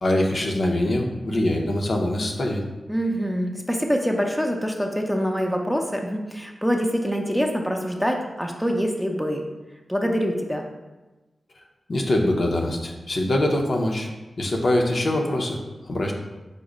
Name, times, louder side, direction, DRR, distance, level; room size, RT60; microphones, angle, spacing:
voice 1, 0.0-2.6 11.9-14.1 14.4-15.6 15.9-16.1, left 1 dB, 60° left, 1 dB, 0.6 m, -23 dB
voice 2, 2.9-9.5 9.9-10.7, equal, ahead, 1 dB, 0.6 m, -25 dB
5.1 x 2.1 x 4.8 m, 1.1 s
cardioid pair, 65°, 0 cm